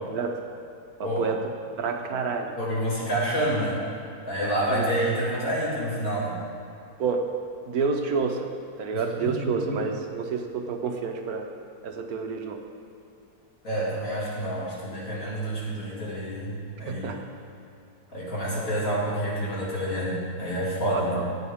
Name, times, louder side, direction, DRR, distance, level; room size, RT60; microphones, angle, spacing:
voice 1, 1.0-1.4 1.8-2.5 4.7-4.9 7.0-7.3 7.7-8.5 8.8-11.5 11.8-12.6 16.8-17.2 20.9-21.2, right 5 dB, 70° right, 4 dB, 1.2 m, -29 dB
voice 2, 2.6-3.8 4.2-6.4 8.9-9.8 13.6-17.2 18.1-21.2, right 1 dB, 55° left, -7 dB, 3.3 m, -28 dB
14.5 x 9.1 x 3.6 m, 2.6 s
omnidirectional pair, 1.7 m